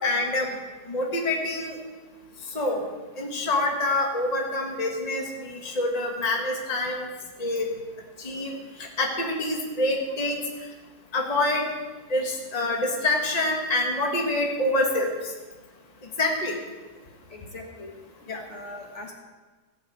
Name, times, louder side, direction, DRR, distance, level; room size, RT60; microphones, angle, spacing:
voice 1, 0.0-0.4 0.9-1.8 2.5-2.8 3.2-7.1 7.4-7.7 8.2-8.5 9.0-10.4 11.1-11.6 12.1-15.1 16.2-16.5 18.3-18.4, left 2 dB, 25° left, 1 dB, 1.5 m, -26 dB
voice 2, 17.3-17.9 18.5-19.1, left 3 dB, 45° left, 0 dB, 1.8 m, -38 dB
15.0 x 6.6 x 7.9 m, 1.3 s
omnidirectional pair, 1.7 m